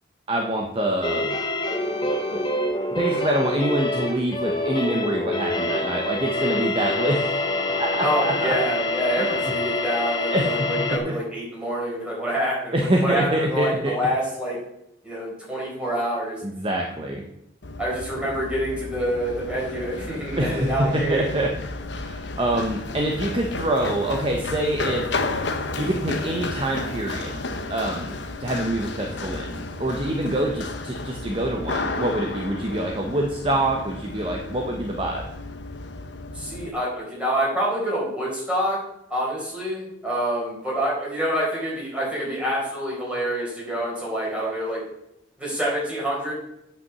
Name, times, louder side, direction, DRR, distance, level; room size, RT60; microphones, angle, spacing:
voice 1, 0.3-1.3 1.7-1.8 2.9-7.4 7.8-8.6 9.2-9.3 10.3-10.7 11.0-11.2 12.7-13.9 16.4-17.2 20.4-21.5 21.9-25.1 25.8-27.4 27.7-35.3, right 1 dB, 30° right, 1 dB, 0.9 m, -25 dB
sound 1, 1.0-11.0, left 2 dB, 25° left, 1.0 m, -26 dB
voice 2, 8.0-14.6 15.0-16.4 17.8-21.3 36.3-38.8 39.1-44.8 45.4-46.3, right 1 dB, 5° right, -5 dB, 4.4 m, -27 dB
Run, 17.6-36.7, left 2 dB, 65° left, 0.9 m, -32 dB
8.9 x 5.5 x 6.9 m, 0.80 s
head